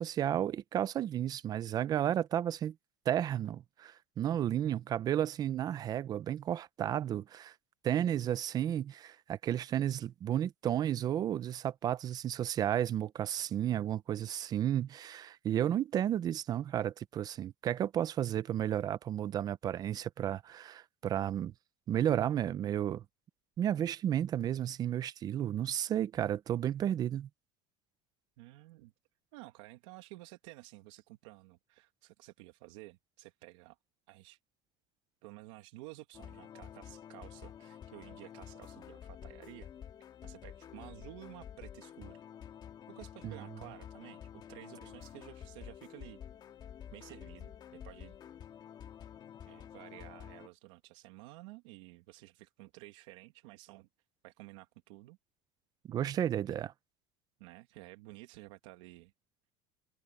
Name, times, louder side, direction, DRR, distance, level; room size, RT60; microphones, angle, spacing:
voice 1, 0.0-2.7 3.1-7.5 7.8-21.5 21.9-23.0 23.6-27.3 43.2-43.3 55.9-56.7, right 10 dB, 25° right, 0.5 m, -32 dB
voice 2, 28.4-28.9 29.3-33.8 34.1-34.4 35.2-39.7 40.2-42.2 42.9-44.2 44.5-46.2 46.9-48.2 49.4-53.9 54.2-55.2 56.4-56.6 57.4-59.1, right 20 dB, 80° right, 1.7 m, -52 dB
sound 1, 36.1-50.5, left 9 dB, 30° left, 2.0 m, -50 dB
cardioid pair, 170°, 15 cm